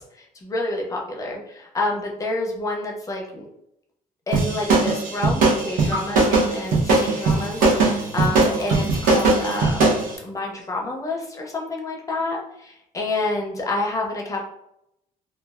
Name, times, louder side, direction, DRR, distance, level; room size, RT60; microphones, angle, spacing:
voice 1, 0.4-3.5 4.3-14.4, left 2 dB, 20° left, 0 dB, 0.5 m, -28 dB
sound 1, 4.3-10.1, right 3 dB, 65° right, 0.8 m, -19 dB
Liquid, 5.9-10.1, right 1 dB, 25° right, 1.0 m, -38 dB
3.0 x 2.2 x 2.4 m, 0.78 s
cardioid pair, 155°, 15 cm